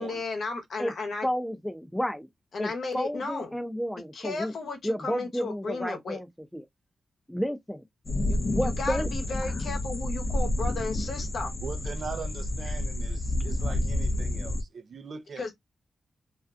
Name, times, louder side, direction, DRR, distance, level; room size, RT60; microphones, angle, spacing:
voice 1, 0.0-1.3 2.5-3.5 4.1-6.2 8.3-8.4 8.6-11.5 15.4-15.5, left 3 dB, 75° left, 0.8 m, -34 dB
voice 2, 1.2-2.3 2.6-4.6 4.8-6.6 7.3-7.8 8.4-9.1 9.4-9.6, equal, 5° left, 0.6 m, -31 dB
sound 1, 8.0-14.6, left 1 dB, 50° left, 0.5 m, -29 dB
voice 3, 11.6-15.5, right 5 dB, 65° right, 0.5 m, -41 dB
2.5 x 2.3 x 2.5 m
cardioid pair, 55°, 0 cm